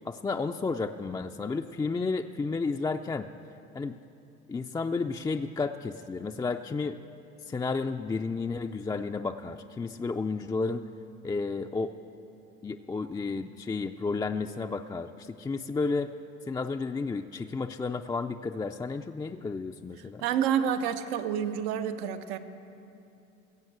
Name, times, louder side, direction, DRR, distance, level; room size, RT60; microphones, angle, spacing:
voice 1, 0.0-3.3 3.7-4.0 4.5-7.0 7.5-10.8 11.2-12.0 12.6-16.1 16.5-20.2, left 4 dB, 15° left, 5 dB, 0.3 m, -32 dB
voice 2, 20.2-22.4, right 8 dB, 85° right, 9 dB, 0.8 m, -28 dB
16.0 x 7.2 x 7.9 m, 2.8 s
supercardioid pair, 85°, 30 cm